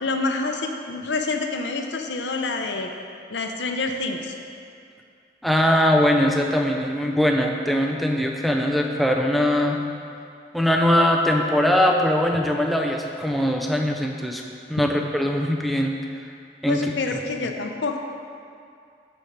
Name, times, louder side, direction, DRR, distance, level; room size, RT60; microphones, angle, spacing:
voice 1, 0.0-2.9 3.3-4.3 16.7-18.0, left 3 dB, 85° left, 4 dB, 0.6 m, -27 dB
voice 2, 5.4-9.8 10.5-14.4 14.7-15.9 16.6-16.8 17.1-17.5, left 1 dB, ahead, 1 dB, 0.5 m, -21 dB
8.6 x 4.4 x 5.0 m, 2.4 s
head